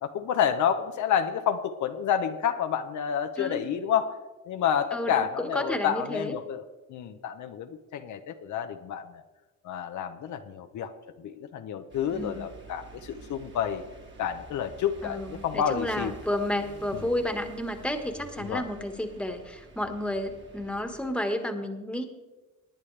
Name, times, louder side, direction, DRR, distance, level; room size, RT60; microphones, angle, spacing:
voice 1, 0.0-4.1 4.5-6.6 6.9-9.2 9.6-10.9 11.2-13.8 14.2-16.1 16.9-17.1 18.4-18.6, left 8 dB, 75° left, 7 dB, 0.9 m, -29 dB
voice 2, 4.9-6.3 12.1-12.5 15.0-22.0, left 1 dB, 5° left, 6 dB, 1.6 m, -31 dB
sound 1, 11.9-21.1, right 3 dB, 40° right, 2.3 m, -49 dB
19.5 x 9.6 x 3.3 m, 1.1 s
cardioid pair, 90°, 30 cm